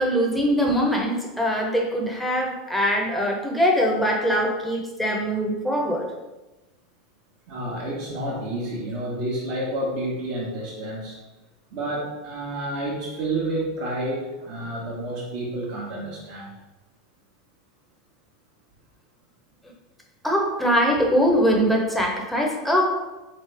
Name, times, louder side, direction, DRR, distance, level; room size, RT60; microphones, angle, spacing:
voice 1, 0.0-6.1 20.2-22.9, equal, 5° left, 0 dB, 0.8 m, -22 dB
voice 2, 7.5-11.2 11.7-16.5, right 1 dB, 55° right, -8 dB, 1.2 m, -30 dB
4.0 x 3.3 x 3.3 m, 1.1 s
hypercardioid pair, 110°, 3 cm